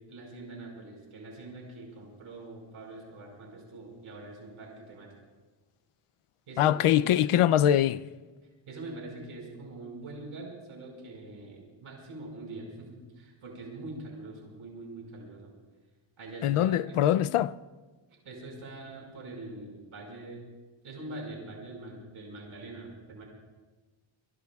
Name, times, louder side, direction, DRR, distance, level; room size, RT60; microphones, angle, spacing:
voice 1, 0.1-5.1 6.5-7.3 8.7-15.5 16.2-17.2 18.2-20.4 20.8-23.2, right 2 dB, 80° right, 5.4 m, -44 dB
voice 2, 6.6-8.0 16.4-17.5, left 11 dB, 90° left, 0.6 m, -23 dB
25.0 x 22.0 x 2.4 m
wide cardioid pair, 160°, 49 cm